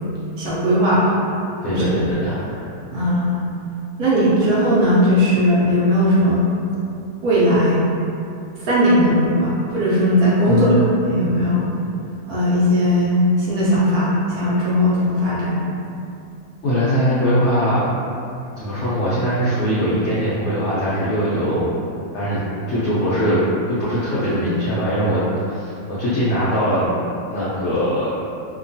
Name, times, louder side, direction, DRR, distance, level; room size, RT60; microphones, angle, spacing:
voice 1, 0.4-1.1 1.7-1.8 2.9-3.4 4.0-6.5 7.2-7.8 8.5-11.7 12.3-15.6, equal, 70° right, -7 dB, 1.0 m, -18 dB
voice 2, 1.6-2.7 10.5-10.8 16.6-17.9 18.6-21.7 22.1-23.4 23.7-26.9 27.3-28.1, equal, 80° left, -10 dB, 0.6 m, -21 dB
2.9 x 2.2 x 2.6 m, 2.6 s
omnidirectional pair, 1.8 m